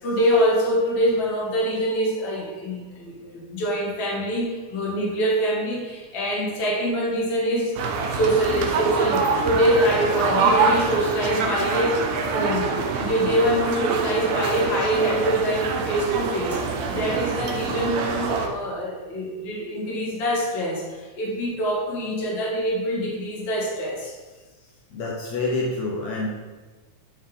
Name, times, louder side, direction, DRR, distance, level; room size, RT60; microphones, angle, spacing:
voice 1, 0.0-12.1 12.3-24.2, equal, 45° left, -4 dB, 2.2 m, -24 dB
voice 2, 2.4-2.8 24.0-24.1 24.9-26.3, left 2 dB, 70° left, -3 dB, 2.2 m, -29 dB
sound 1, 7.8-18.5, right 4 dB, 75° right, 2.0 m, -25 dB
11.0 x 4.4 x 3.7 m, 1.3 s
omnidirectional pair, 3.5 m